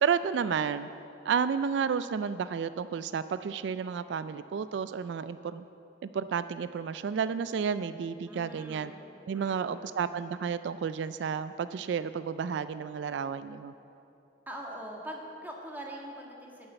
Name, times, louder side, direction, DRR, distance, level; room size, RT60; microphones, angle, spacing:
voice 1, 0.0-0.9 1.3-5.6 6.0-8.9 9.3-13.7, right 6 dB, 80° right, 13 dB, 0.3 m, -31 dB
voice 2, 8.3-9.0 9.3-9.9 14.5-16.7, right 1 dB, 10° right, -1 dB, 1.6 m, -42 dB
11.0 x 9.0 x 6.9 m, 2.8 s
head